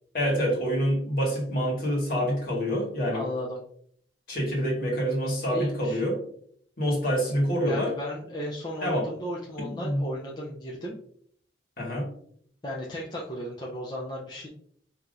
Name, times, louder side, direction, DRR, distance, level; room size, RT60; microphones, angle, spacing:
voice 1, 0.1-3.2 4.3-6.2 6.8-7.9 8.8-9.1 9.6-10.0 11.8-12.1, equal, 50° left, -2 dB, 1.7 m, -26 dB
voice 2, 3.1-3.6 5.5-6.0 7.7-11.0 12.6-14.5, equal, 25° left, -4 dB, 0.6 m, -35 dB
5.7 x 2.9 x 2.5 m, 0.63 s
head